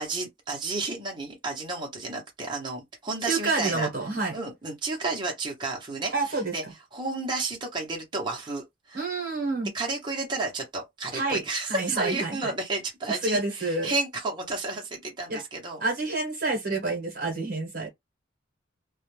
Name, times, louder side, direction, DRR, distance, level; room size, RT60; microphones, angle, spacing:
voice 1, 0.0-3.9 4.3-6.6 6.9-9.0 9.7-15.8, right 3 dB, 25° right, 0.7 m, -31 dB
voice 2, 3.2-4.3 6.1-6.7 8.9-9.7 11.1-11.4 11.7-12.5 13.2-13.9 15.3-15.4 15.8-17.9, right 3 dB, 50° right, 0.9 m, -28 dB
2.2 x 2.1 x 3.1 m
head